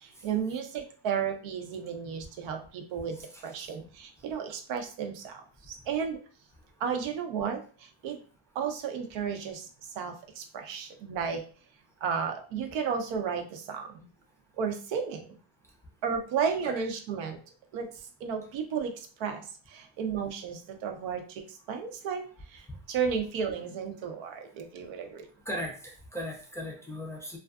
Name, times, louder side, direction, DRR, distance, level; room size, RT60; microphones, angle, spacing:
voice 1, 0.0-3.2 3.4-6.2 6.8-8.2 8.5-11.4 12.0-14.1 14.6-15.4 16.0-17.4 17.7-25.3, right 6 dB, 80° right, 5 dB, 0.7 m, -33 dB
voice 2, 3.2-3.7 25.5-27.4, equal, 5° left, -2 dB, 0.4 m, -38 dB
2.4 x 2.3 x 2.3 m, 0.40 s
cardioid pair, 105°, 45 cm